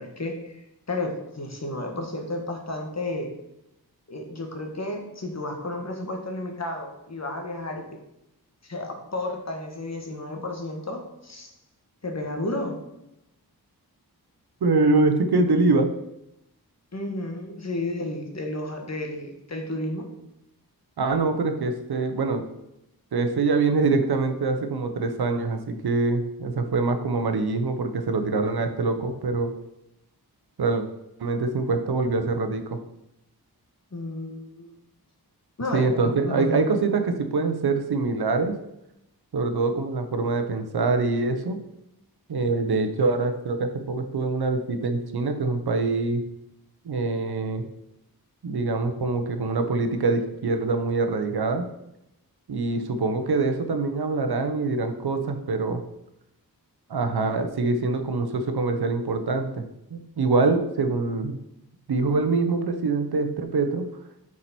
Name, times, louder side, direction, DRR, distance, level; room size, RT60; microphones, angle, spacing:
voice 1, 0.0-3.3 4.1-7.8 8.6-11.5 12.0-12.8 16.9-20.1 33.9-34.7 35.6-36.8, left 2 dB, 45° left, 2 dB, 1.6 m, -32 dB
voice 2, 14.6-15.9 21.0-22.4 23.1-29.5 30.6-30.8 31.2-32.8 35.7-38.6 39.3-41.6 42.3-46.2 46.8-47.6 48.4-51.7 52.5-55.8 56.9-59.6 59.9-61.4 61.9-63.9, right 3 dB, 80° right, 7 dB, 0.9 m, -24 dB
8.5 x 4.9 x 4.4 m, 0.84 s
wide cardioid pair, 85°, 38 cm